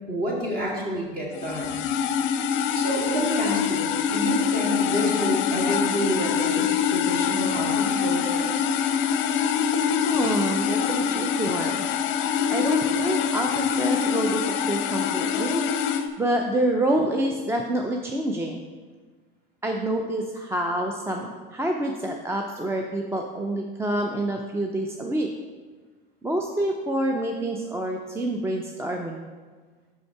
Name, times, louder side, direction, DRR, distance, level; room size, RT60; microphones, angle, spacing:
voice 1, 0.1-1.8 2.7-8.5, equal, 30° right, -2 dB, 2.1 m, -29 dB
sound 1, 1.4-16.0, left 7 dB, 45° left, 0.6 m, -24 dB
voice 2, 10.1-11.9 12.2-15.6 16.2-18.6 19.6-25.3 26.2-29.3, right 1 dB, 10° right, 2 dB, 0.4 m, -27 dB
5.9 x 5.1 x 4.6 m, 1.4 s
hypercardioid pair, 95°, 29 cm